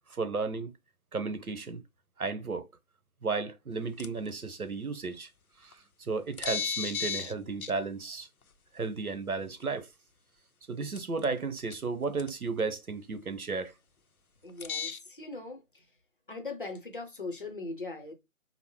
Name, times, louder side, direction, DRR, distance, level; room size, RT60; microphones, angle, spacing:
voice 1, 0.1-0.7 1.1-1.8 2.2-2.6 3.2-5.3 5.6-8.3 8.7-9.9 10.7-13.7, right 4 dB, 85° right, 0.9 m, -34 dB
sound 1, 4.0-4.3 5.7-5.8 6.4-7.3 7.6-7.7 9.6-9.7 11.0-11.4 11.7-11.8 12.2-12.3 14.6-15.0, left 6 dB, 85° left, 0.7 m, -33 dB
voice 2, 14.4-15.8 16.3-18.1, left 3 dB, 40° left, 0.7 m, -40 dB
5.4 x 2.1 x 2.8 m
figure-of-eight pair, 155°, 42 cm